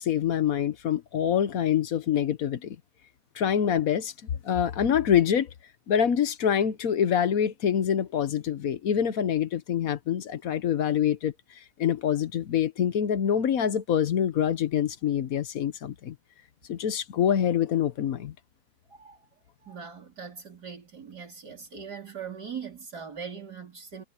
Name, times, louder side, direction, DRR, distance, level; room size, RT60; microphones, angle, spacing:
voice 1, 0.0-2.8 3.3-4.1 4.4-5.5 5.9-11.3 11.8-16.1 16.7-18.3, left 9 dB, 55° left, 1.2 m, -25 dB
voice 2, 19.6-24.0, right 6 dB, 60° right, 4.6 m, -40 dB
omnidirectional pair, 2.0 m